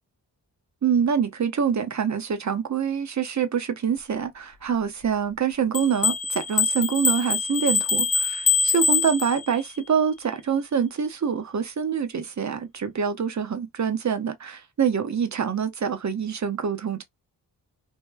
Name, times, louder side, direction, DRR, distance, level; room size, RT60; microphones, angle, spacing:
voice 1, 0.8-17.0, right 7 dB, 40° right, 0.8 m, -25 dB
sound 1, 5.7-9.7, left 5 dB, 35° left, 0.6 m, -24 dB
3.2 x 2.1 x 2.2 m
cardioid pair, 50°, 43 cm